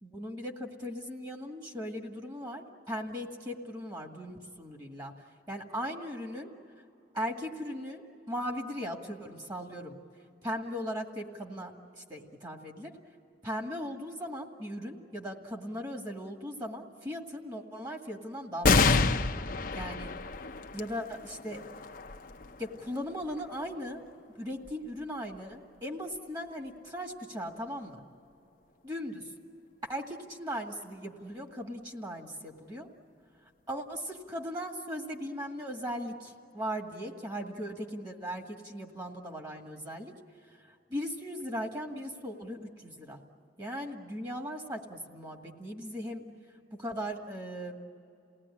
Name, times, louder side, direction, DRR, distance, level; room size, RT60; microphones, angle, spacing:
voice 1, 0.0-5.1 5.5-6.5 7.1-10.0 10.4-12.9 13.4-18.9 19.8-20.3 20.7-21.7 22.6-24.1 24.4-28.0 28.8-29.3 29.8-32.9 33.7-40.1 40.7-43.2 43.6-46.3 46.7-47.9, equal, 25° right, 2 dB, 2.0 m, -38 dB
sound 1, 18.6-25.5 26.1-26.2 27.4-27.9, left 4 dB, 50° left, 0.8 m, -30 dB
29.0 x 18.5 x 9.9 m, 2.7 s
head